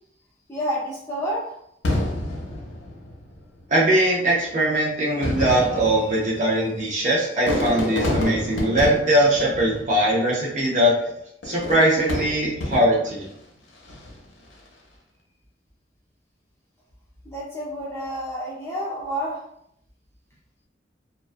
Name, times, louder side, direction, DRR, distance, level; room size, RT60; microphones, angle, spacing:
voice 1, 0.5-1.6 17.2-19.5, equal, 15° left, -6 dB, 0.7 m, -29 dB
Fireworks, 1.8-3.5 4.3-4.4 5.1-10.4 11.4-13.2 13.8-14.2, left 1 dB, 80° left, 0.6 m, -29 dB
voice 2, 3.7-10.9 11.4-13.3, right 1 dB, 40° right, -4 dB, 0.5 m, -21 dB
2.3 x 2.2 x 2.5 m, 0.72 s
head